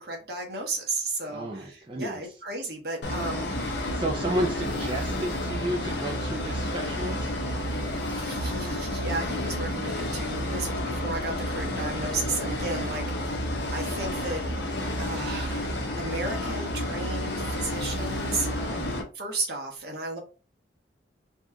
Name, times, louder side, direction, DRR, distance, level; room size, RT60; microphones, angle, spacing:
voice 1, 0.0-3.9 8.1-14.4 15.0-18.8 19.1-20.2, right 2 dB, 60° right, 0 dB, 1.2 m, -34 dB
voice 2, 1.3-2.2 3.9-7.3 18.5-18.8, right 1 dB, 25° right, -1 dB, 0.4 m, -32 dB
sound 1, 3.0-19.0, left 1 dB, 70° left, 0.8 m, -30 dB
4.1 x 2.4 x 2.8 m, 0.33 s
head